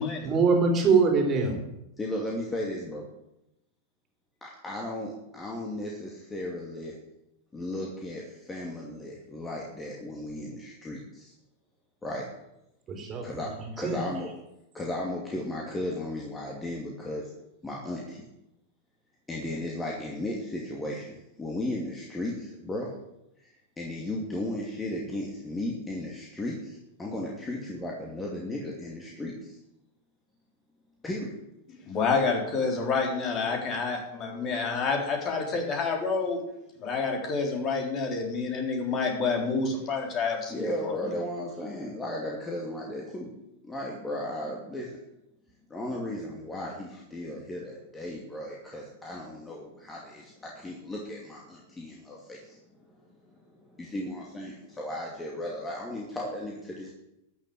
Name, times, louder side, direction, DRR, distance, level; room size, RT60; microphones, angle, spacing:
voice 1, 0.0-1.6 12.9-13.2 13.8-14.0, right 4 dB, 25° right, 2 dB, 3.4 m, -23 dB
voice 2, 2.0-3.1 4.4-7.0 7.5-11.3 12.0-12.3 13.2-14.3 14.7-17.3 17.6-18.3 19.3-22.9 23.4-29.6 31.0-31.4 40.5-43.3 43.6-45.0 45.7-52.6 53.1-56.9, left 1 dB, 15° left, -2 dB, 2.6 m, -35 dB
voice 3, 31.9-36.4 36.8-40.9, left 4 dB, 35° left, 1 dB, 3.9 m, -28 dB
13.5 x 7.2 x 8.7 m, 0.87 s
figure-of-eight pair, 95°, 0 cm